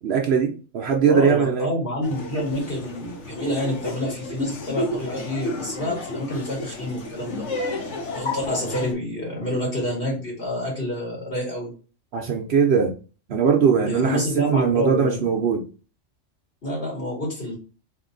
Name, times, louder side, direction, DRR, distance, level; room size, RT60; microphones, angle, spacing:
voice 1, 0.0-1.7 12.1-12.9 13.3-14.2 14.5-15.6, right 6 dB, 60° right, 3 dB, 0.8 m, -20 dB
voice 2, 1.1-7.5 8.1-11.7 13.8-15.2 16.6-17.5, left 1 dB, 45° left, -3 dB, 2.1 m, -28 dB
Laughter, 2.0-8.9, left 1 dB, 65° left, 1.3 m, -32 dB
3.5 x 2.6 x 3.8 m, 0.35 s
omnidirectional pair, 1.3 m